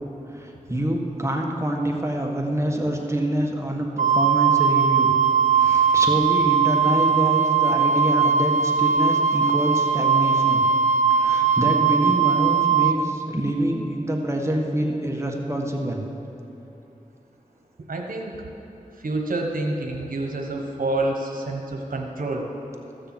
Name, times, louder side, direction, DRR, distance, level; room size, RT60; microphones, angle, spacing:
voice 1, 0.3-5.1 5.5-10.6 11.1-16.0, right 1 dB, 20° right, 0 dB, 1.5 m, -26 dB
Wind instrument woodwind instrument, 4.0-13.0, right 6 dB, 60° right, 0.5 m, -20 dB
voice 2, 17.9-18.3 19.0-22.5, right 2 dB, 80° right, 1 dB, 1.2 m, -28 dB
14.5 x 6.7 x 7.7 m, 3.0 s
wide cardioid pair, 55°, 14 cm